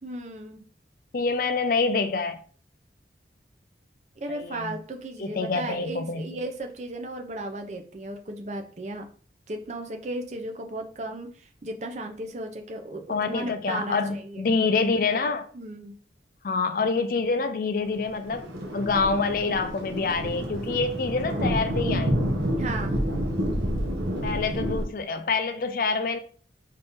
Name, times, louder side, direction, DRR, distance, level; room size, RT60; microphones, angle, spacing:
voice 1, 0.0-0.6 4.2-9.1 9.5-14.4 15.5-15.9 22.6-23.0, right 1 dB, 40° right, 4 dB, 0.5 m, -35 dB
voice 2, 1.1-2.4 4.3-4.8 5.2-6.3 13.1-15.5 16.4-18.5 18.7-22.4 24.2-26.2, left 4 dB, 50° left, 9 dB, 0.4 m, -26 dB
Thunder, 18.0-24.9, equal, 85° right, 0.9 m, -28 dB
4.2 x 2.7 x 3.5 m, 0.43 s
head